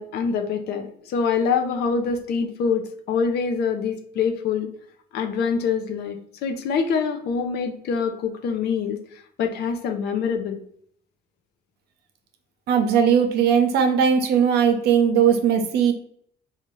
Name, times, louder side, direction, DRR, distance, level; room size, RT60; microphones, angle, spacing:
voice 1, 0.0-4.7 5.1-10.6, left 5 dB, 75° left, 5 dB, 0.6 m, -25 dB
voice 2, 12.7-15.9, right 7 dB, 75° right, 6 dB, 0.7 m, -19 dB
4.1 x 2.4 x 3.1 m, 0.65 s
cardioid pair, 110°, 17 cm